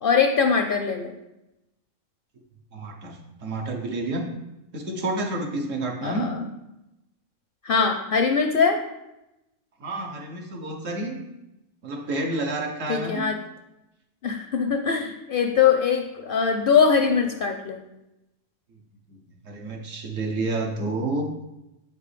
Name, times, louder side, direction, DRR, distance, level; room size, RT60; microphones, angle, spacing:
voice 1, 0.0-1.1 6.0-6.5 7.6-8.8 12.9-13.4 14.2-17.8, left 6 dB, 60° left, 5 dB, 0.6 m, -22 dB
voice 2, 2.7-4.3 4.7-6.3 9.8-11.2 11.8-13.3 19.1-19.2 19.4-21.3, right 2 dB, 75° right, 2 dB, 1.3 m, -29 dB
7.8 x 5.2 x 3.3 m, 0.92 s
omnidirectional pair, 1.3 m